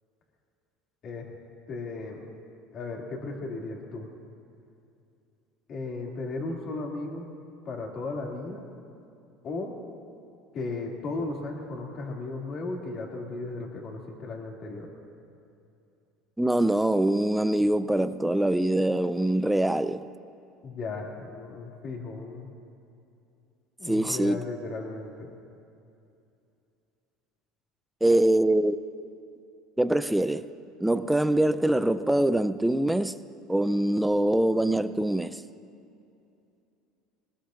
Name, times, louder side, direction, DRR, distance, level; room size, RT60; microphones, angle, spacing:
voice 1, 1.7-2.2 2.7-4.1 5.7-7.3 7.6-8.6 9.4-9.8 10.5-14.9 20.6-22.5 23.8-25.3, left 3 dB, 45° left, 2.6 m, -35 dB
voice 2, 16.4-20.1 23.9-24.4 28.0-28.8 29.8-30.5 30.8-33.2 33.5-35.4, right 1 dB, 5° right, 0.5 m, -24 dB
21.0 x 20.0 x 2.6 m
supercardioid pair, 105°, 0 cm